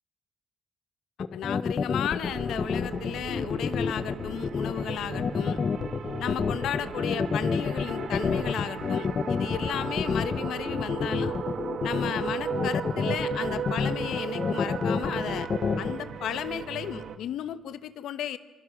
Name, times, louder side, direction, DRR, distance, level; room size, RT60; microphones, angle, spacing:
sound 1, 1.2-15.9, left 5 dB, 45° left, 1.1 m, -28 dB
voice 1, 1.3-5.6 6.2-11.3 11.8-15.5 15.8-18.4, left 10 dB, 80° left, 13 dB, 1.2 m, -34 dB
sound 2, 2.2-17.2, right 7 dB, 65° right, 1.5 m, -36 dB
27.0 x 23.5 x 6.3 m, 1.3 s
cardioid pair, 90°, 0 cm